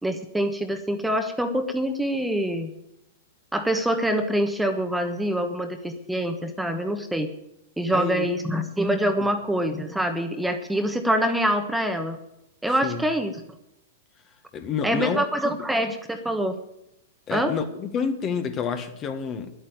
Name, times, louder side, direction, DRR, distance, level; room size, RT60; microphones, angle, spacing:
voice 1, 0.0-2.7 3.5-7.3 7.8-12.2 12.6-13.3 14.8-16.5 17.3-17.5, right 1 dB, 5° right, 6 dB, 1.3 m, -25 dB
voice 2, 7.9-8.3 12.8-13.0 14.5-15.2 15.6-15.7 17.3-19.5, left 6 dB, 30° left, 8 dB, 1.5 m, -28 dB
11.0 x 8.7 x 9.3 m, 0.85 s
hypercardioid pair, 110°, 0 cm